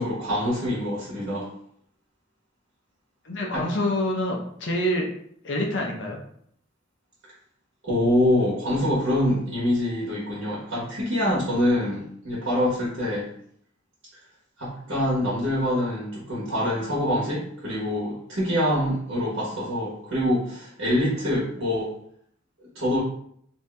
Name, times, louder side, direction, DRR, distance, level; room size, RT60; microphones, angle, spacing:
voice 1, 0.0-1.5 3.5-3.7 7.8-13.3 14.6-21.9 22.7-23.0, left 1 dB, 65° right, -7 dB, 1.1 m, -25 dB
voice 2, 3.2-5.1 5.4-6.2, left 1 dB, 65° left, 0 dB, 0.7 m, -26 dB
2.7 x 2.7 x 3.3 m, 0.66 s
head